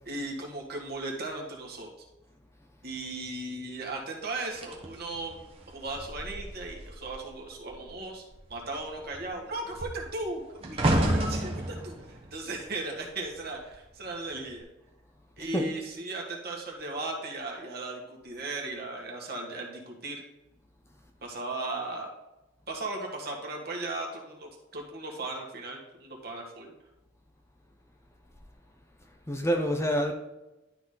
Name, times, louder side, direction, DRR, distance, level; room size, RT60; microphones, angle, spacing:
voice 1, 0.1-1.9 2.8-5.4 5.7-8.2 8.5-14.7 15.4-20.2 21.2-22.1 22.7-26.7, right 2 dB, 55° right, -1 dB, 1.9 m, -37 dB
sound 1, 4.6-7.3 7.6-7.9 8.3-13.6 14.3-14.6, right 1 dB, 30° right, 1.2 m, -32 dB
voice 2, 29.3-30.1, equal, 15° left, 3 dB, 0.7 m, -27 dB
11.5 x 4.1 x 3.9 m, 0.98 s
head